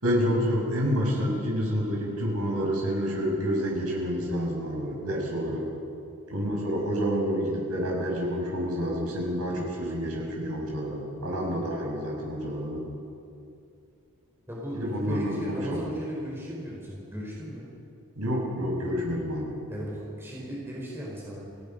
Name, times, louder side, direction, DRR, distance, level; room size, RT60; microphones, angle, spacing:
voice 1, 0.0-5.7 6.3-12.8 14.7-15.9 18.2-19.6, equal, 85° right, -2 dB, 6.0 m, -28 dB
voice 2, 14.5-17.7 19.7-21.4, equal, 10° right, -4 dB, 4.6 m, -36 dB
29.5 x 18.5 x 5.3 m, 2.5 s
head